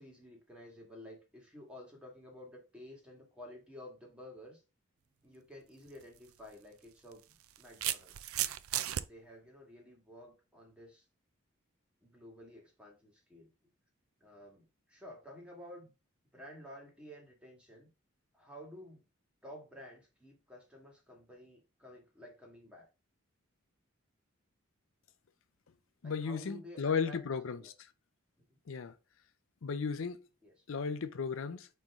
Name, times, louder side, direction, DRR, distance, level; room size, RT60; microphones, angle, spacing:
voice 1, 0.0-4.6 5.2-8.2 9.0-11.0 12.0-13.5 14.2-15.9 16.3-17.9 18.3-19.1 19.4-22.9 26.0-27.7 30.4-30.6, left 1 dB, 5° right, 1.9 m, -52 dB
sound 1, 5.9-6.0 7.1-9.0, right 13 dB, 85° right, 0.4 m, -35 dB
voice 2, 26.0-27.7 28.7-28.9 29.6-30.2 30.7-31.7, left 5 dB, 70° left, 0.5 m, -35 dB
9.1 x 3.1 x 3.6 m
head